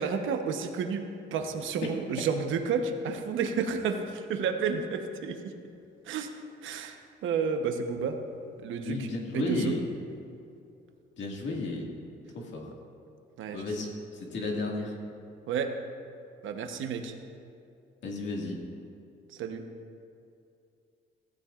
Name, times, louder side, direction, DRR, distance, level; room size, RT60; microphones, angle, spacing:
voice 1, 0.0-5.4 6.1-6.3 6.6-8.2 8.6-9.8 13.4-13.7 15.5-15.7 16.4-17.1 19.4-19.6, right 6 dB, 80° right, 5 dB, 1.0 m, -31 dB
voice 2, 8.8-9.8 11.2-11.9 12.3-12.6 13.5-14.9 18.0-18.6, left 2 dB, 65° left, -1 dB, 2.0 m, -33 dB
15.5 x 14.5 x 2.5 m, 2.5 s
cardioid pair, 90°, 20 cm